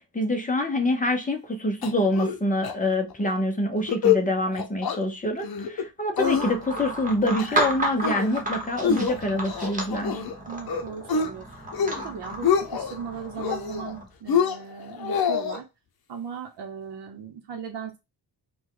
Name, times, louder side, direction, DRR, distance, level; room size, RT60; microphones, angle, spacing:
voice 1, 0.1-10.2, left 1 dB, 20° left, 0.8 m, -26 dB
sound 1, 1.8-2.4 2.6-2.7 3.1-3.4 3.8-4.2 4.5-5.0 5.4-5.8 6.2-6.8 7.2-7.7 8.0-8.4 8.8-10.3 10.7-11.3 11.7-12.0 12.3-12.9 13.4-13.9 14.3-15.6, left 7 dB, 60° left, 0.8 m, -26 dB
sound 2, 6.2-14.1, right 1 dB, 20° right, 1.1 m, -33 dB
voice 2, 10.5-11.5 12.0-15.6 16.1-18.0, right 6 dB, 80° right, 0.9 m, -37 dB
5.1 x 2.4 x 3.7 m
wide cardioid pair, 175°, 41 cm